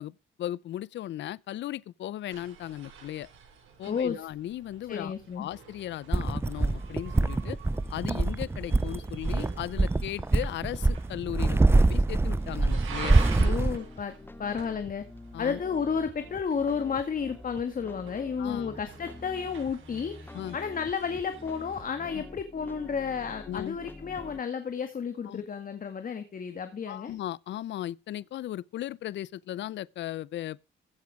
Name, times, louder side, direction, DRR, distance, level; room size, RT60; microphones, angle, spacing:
voice 1, 0.0-3.3 3.8-7.6 7.9-13.5 15.3-15.6 18.4-18.7 20.3-20.6 22.1-22.2 23.5-23.8 25.3-25.4 26.9-30.6, left 13 dB, 65° left, 0.6 m, -37 dB
sound 1, 2.3-22.0, right 6 dB, 80° right, 7.1 m, -48 dB
voice 2, 3.9-4.3 4.9-5.5 13.4-14.1 14.4-15.1 15.4-27.1, left 6 dB, 45° left, 1.9 m, -32 dB
sound 2, 6.1-13.8, right 2 dB, 10° right, 0.6 m, -25 dB
sound 3, 13.6-24.4, left 2 dB, 10° left, 0.9 m, -47 dB
15.5 x 8.4 x 4.8 m
cardioid pair, 90°, 20 cm